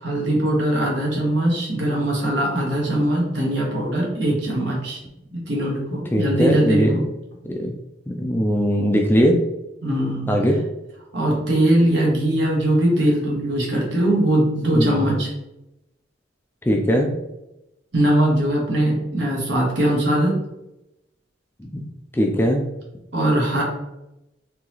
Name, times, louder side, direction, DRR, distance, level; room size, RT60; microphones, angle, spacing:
voice 1, 0.0-5.0 5.3-7.0 9.8-10.3 11.1-15.3 17.9-20.3 23.1-23.6, right 1 dB, 65° right, -2 dB, 1.2 m, -21 dB
voice 2, 6.1-6.9 7.5-7.7 8.1-9.4 10.3-10.6 14.7-15.1 16.7-17.1 21.7-21.8 22.1-22.6, equal, 10° left, 2 dB, 0.3 m, -20 dB
3.8 x 2.8 x 2.9 m, 0.90 s
head